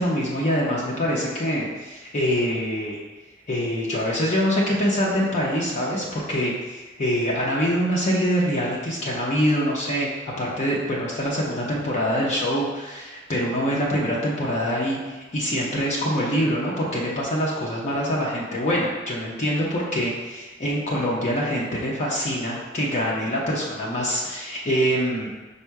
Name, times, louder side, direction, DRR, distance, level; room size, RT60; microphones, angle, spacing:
voice 1, 0.0-3.0 3.5-10.1 10.4-25.3, equal, 40° left, -4 dB, 0.7 m, -24 dB
5.4 x 2.1 x 4.6 m, 1.2 s
head